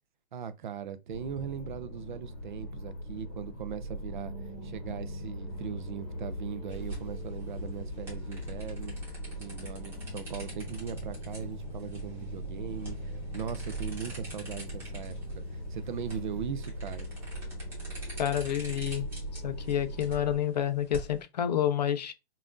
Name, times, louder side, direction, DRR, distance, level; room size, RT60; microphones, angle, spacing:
voice 1, 0.3-4.3 4.6-9.0 9.4-17.1, right 8 dB, 50° right, 0.4 m, -39 dB
sound 1, 1.1-20.4, equal, 25° left, 1.0 m, -40 dB
Bass guitar, 4.2-10.4, right 14 dB, 70° right, 0.9 m, -53 dB
sound 2, 6.7-21.2, right 2 dB, 5° right, 1.1 m, -45 dB
voice 2, 18.2-19.1 19.3-22.1, left 10 dB, 45° left, 0.4 m, -29 dB
5.5 x 2.5 x 2.5 m
hypercardioid pair, 165°, 32 cm